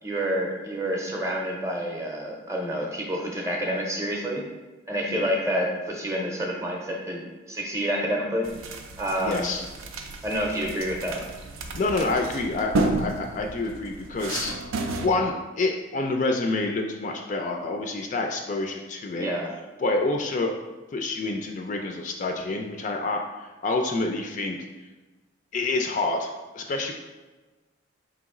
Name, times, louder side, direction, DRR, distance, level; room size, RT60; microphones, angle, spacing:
voice 1, 0.0-4.5 4.9-8.5 9.0-9.5 10.2-11.3 19.2-19.5, equal, 15° right, 0 dB, 0.6 m, -28 dB
sound 1, 8.4-15.1, right 2 dB, 85° right, 0.5 m, -32 dB
voice 2, 9.2-9.6 11.7-14.5 14.9-19.3 19.8-20.5 20.9-24.6 25.5-26.9, left 2 dB, 40° left, 3 dB, 0.3 m, -27 dB
4.4 x 3.0 x 3.6 m, 1.2 s
head